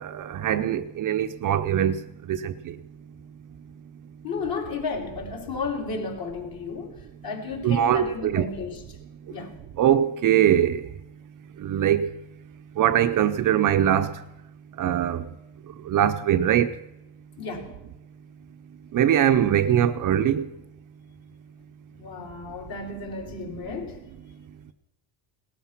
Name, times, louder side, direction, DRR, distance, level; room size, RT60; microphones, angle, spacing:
voice 1, 0.0-2.0 2.3-2.7 7.6-8.4 9.8-10.9 11.6-12.1 12.8-14.2 14.8-15.3 15.9-16.7 18.9-20.5, right 10 dB, 40° right, 0.7 m, -22 dB
voice 2, 4.2-6.9 7.2-8.7 9.3-9.5 17.4-17.7 22.0-24.0, left 4 dB, 45° left, 4.0 m, -33 dB
18.5 x 13.0 x 6.0 m
cardioid pair, 130°, 48 cm